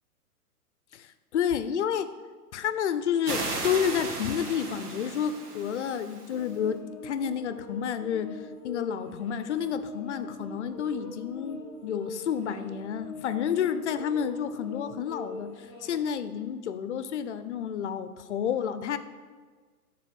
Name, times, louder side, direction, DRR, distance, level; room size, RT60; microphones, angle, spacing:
voice 1, 0.9-2.1 2.5-19.0, left 8 dB, 50° left, 12 dB, 0.5 m, -30 dB
sound 1, 3.2-6.6, right 2 dB, 85° right, 1.7 m, -36 dB
sound 2, 6.3-16.1, left 3 dB, 10° right, 0.4 m, -42 dB
7.4 x 3.5 x 6.1 m, 1.5 s
hypercardioid pair, 145°, 45 cm